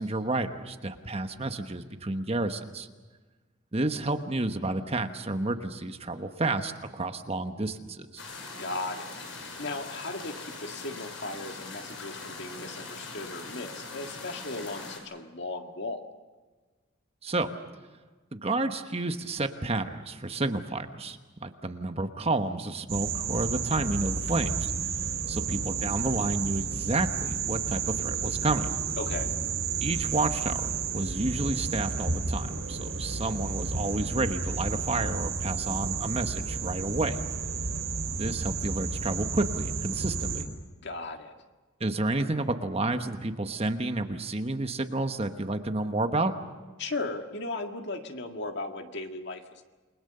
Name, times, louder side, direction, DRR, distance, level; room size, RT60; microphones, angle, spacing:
voice 1, 0.0-2.9 3.7-8.2 17.2-17.5 18.3-24.9 25.3-28.8 29.8-37.2 38.2-40.4 41.8-46.3, right 2 dB, 30° right, 7 dB, 1.2 m, -30 dB
sound 1, 8.2-15.0, left 3 dB, 70° left, 5.8 m, -41 dB
voice 2, 8.6-16.1 29.0-29.3 40.8-41.3 46.8-49.6, left 2 dB, 55° left, 4 dB, 1.9 m, -37 dB
sound 2, 22.9-40.4, right 5 dB, 70° right, 3.2 m, -31 dB
29.0 x 21.5 x 6.8 m, 1.3 s
head